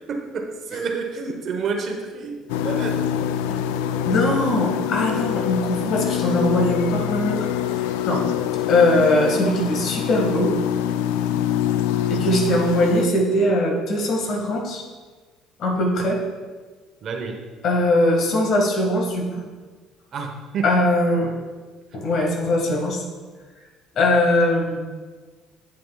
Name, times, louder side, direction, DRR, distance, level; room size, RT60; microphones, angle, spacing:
voice 1, 0.1-3.1 17.0-17.4 20.1-20.8, right 5 dB, 55° right, 4 dB, 1.0 m, -29 dB
sound 1, 2.5-13.1, left 10 dB, 90° left, 0.3 m, -25 dB
voice 2, 4.0-7.5 8.1-8.2 8.7-10.5 12.1-14.8 15.6-16.2 17.6-19.3 20.6-21.3 21.9-23.0 24.0-24.8, left 1 dB, 60° left, 1 dB, 1.7 m, -20 dB
8.5 x 7.6 x 2.3 m, 1.4 s
supercardioid pair, 80°, 0 cm